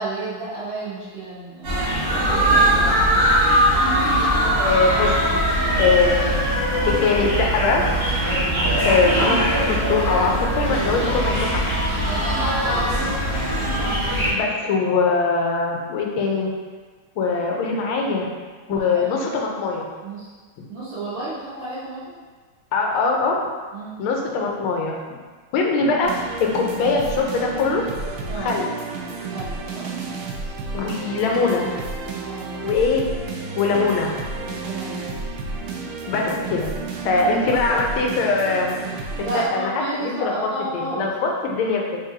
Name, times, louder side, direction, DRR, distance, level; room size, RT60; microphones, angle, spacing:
voice 1, 0.0-1.8 2.1-2.9 12.0-12.3 18.7-19.3 20.0-20.3 20.7-22.2 23.7-24.1 28.3-28.5 29.3-29.9 32.1-32.7 34.6-35.0 39.2-41.1, right 2 dB, 70° right, -12 dB, 1.6 m, -32 dB
sound 1, 1.6-14.3, right 1 dB, 40° right, 1.1 m, -21 dB
voice 2, 4.6-6.4 6.8-7.8 8.8-11.6 14.3-16.5 17.2-18.3 18.7-19.9 22.7-23.3 24.0-25.2 25.5-27.8 28.4-28.7 30.7-31.7 32.6-33.0 33.6-34.1 36.1-36.7 37.0-38.8 39.2-39.7 40.0-40.4 40.7-42.0, left 4 dB, 85° left, 0 dB, 1.5 m, -22 dB
sound 2, 26.0-39.5, right 4 dB, 85° right, 1.4 m, -31 dB
3.8 x 3.6 x 2.7 m, 1.4 s
omnidirectional pair, 2.2 m